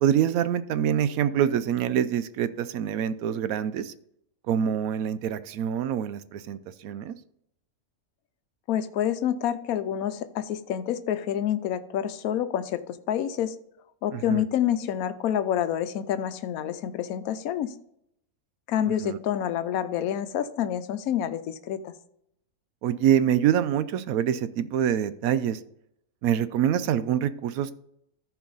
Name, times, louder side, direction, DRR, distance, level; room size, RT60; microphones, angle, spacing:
voice 1, 0.0-3.9 4.5-7.1 14.1-14.4 19.0-19.2 22.8-25.6 26.2-27.7, right 9 dB, 75° right, 14 dB, 1.0 m, -25 dB
voice 2, 8.7-13.5 14.0-17.7 18.7-21.9, left 10 dB, 75° left, 11 dB, 1.1 m, -28 dB
13.5 x 4.8 x 3.9 m, 0.76 s
omnidirectional pair, 1.5 m